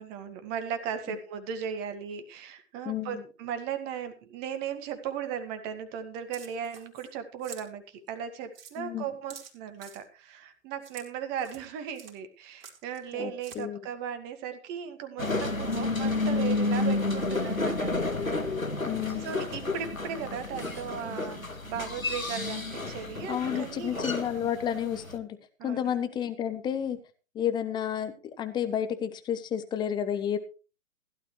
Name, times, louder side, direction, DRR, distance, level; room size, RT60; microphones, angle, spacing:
voice 1, 0.0-18.5 19.1-24.1 24.8-25.0 25.6-26.0, right 8 dB, 25° right, 8 dB, 1.9 m, -37 dB
voice 2, 2.8-3.2 8.8-9.1 13.1-13.8 18.9-19.3 23.3-25.4 25.6-27.0 27.3-30.4, left 9 dB, 10° left, 10 dB, 1.0 m, -31 dB
sound 1, 6.3-7.1 7.4-7.7 8.1-8.2 8.5-8.7 9.3-10.0 10.8-11.1 11.4-11.6 11.9-12.1 12.6-13.1 13.4-13.6, right 7 dB, 45° right, 3.9 m, -47 dB
sound 2, 15.2-25.2, left 3 dB, 85° left, 1.9 m, -31 dB
16.0 x 12.0 x 3.2 m, 0.33 s
figure-of-eight pair, 120°, 40 cm